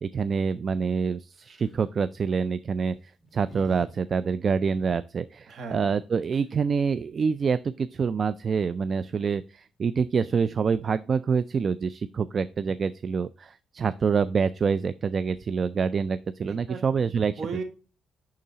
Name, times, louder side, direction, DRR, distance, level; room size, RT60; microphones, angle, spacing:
voice 1, 0.0-2.9 3.3-17.3, right 5 dB, 45° right, 15 dB, 0.3 m, -26 dB
sound 1, 1.4-1.8 2.8-3.9 4.2-4.3 5.9-6.0 6.2-6.7, right 1 dB, 15° left, 2.0 m, -47 dB
voice 2, 5.5-5.9 16.5-17.0 17.4-17.6, right 5 dB, 60° right, 5 dB, 1.6 m, -36 dB
10.5 x 3.8 x 2.8 m, 0.36 s
cardioid pair, 90°, 0 cm